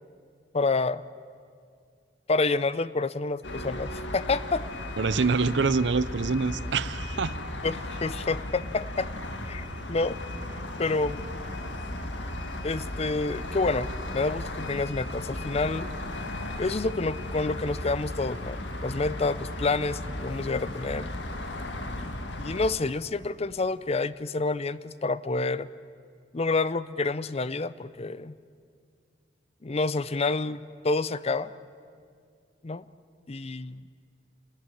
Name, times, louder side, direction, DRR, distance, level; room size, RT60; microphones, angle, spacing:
voice 1, 0.5-1.0 2.3-4.6 7.6-9.1 9.5-10.2 10.8-11.3 12.6-15.9 16.6-21.1 21.9-25.7 26.3-28.3 29.6-31.5 32.6-32.8 33.3-33.8, left 3 dB, 35° left, 17 dB, 0.6 m, -28 dB
sound 1, 3.4-22.7, left 1 dB, 75° left, 1.9 m, -36 dB
voice 2, 5.0-7.4, right 4 dB, 70° right, 16 dB, 0.7 m, -25 dB
28.5 x 14.0 x 10.0 m, 2.2 s
head